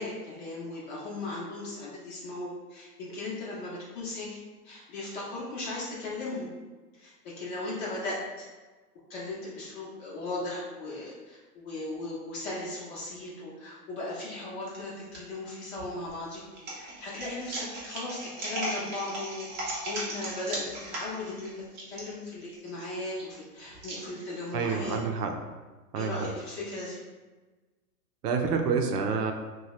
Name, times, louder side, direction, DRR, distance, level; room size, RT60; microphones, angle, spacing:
voice 1, 0.0-6.5 6.9-8.5 9.1-16.4 16.7-25.0 26.0-27.0, left 2 dB, 45° left, -6 dB, 0.9 m, -37 dB
sound 1, 14.6-15.2 15.8-24.7, right 1 dB, 25° right, 0.6 m, -37 dB
voice 2, 24.5-25.4 25.9-26.3 28.2-29.3, right 5 dB, 75° right, 4 dB, 0.6 m, -28 dB
2.7 x 2.3 x 3.1 m, 1.3 s
hypercardioid pair, 120°, 46 cm